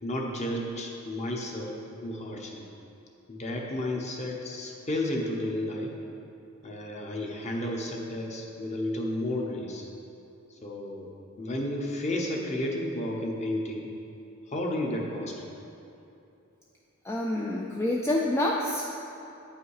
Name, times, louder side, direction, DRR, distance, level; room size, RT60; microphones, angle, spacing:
voice 1, 0.0-2.7 3.3-5.9 6.6-9.8 10.6-11.1 11.4-13.9 14.5-15.5, left 1 dB, 30° left, 0 dB, 1.0 m, -32 dB
voice 2, 17.0-18.9, left 1 dB, 10° left, -2 dB, 0.4 m, -27 dB
9.1 x 5.7 x 4.8 m, 2.8 s
head